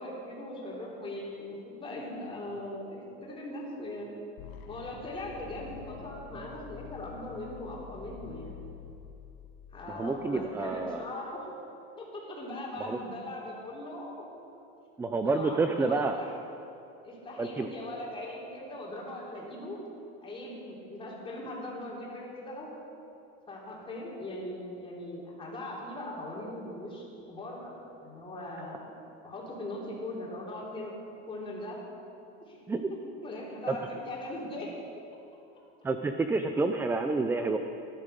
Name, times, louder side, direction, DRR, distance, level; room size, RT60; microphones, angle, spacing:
voice 1, 0.0-4.1 4.7-8.5 9.7-11.5 12.0-14.2 15.2-16.3 17.0-19.8 20.2-22.7 23.5-27.7 28.0-28.9 29.2-30.9 31.3-31.8 32.5-32.6 32.9-34.7, left 1 dB, 15° left, -4 dB, 3.6 m, -40 dB
sound 1, 4.4-10.4, left 8 dB, 65° left, 1.6 m, -47 dB
voice 2, 9.9-11.0 12.8-13.0 15.0-16.2 17.4-17.7 32.7-32.8 33.7-33.8 35.8-37.6, right 3 dB, 10° right, 7 dB, 0.4 m, -29 dB
15.0 x 11.5 x 6.7 m, 2.7 s
supercardioid pair, 145°, 30 cm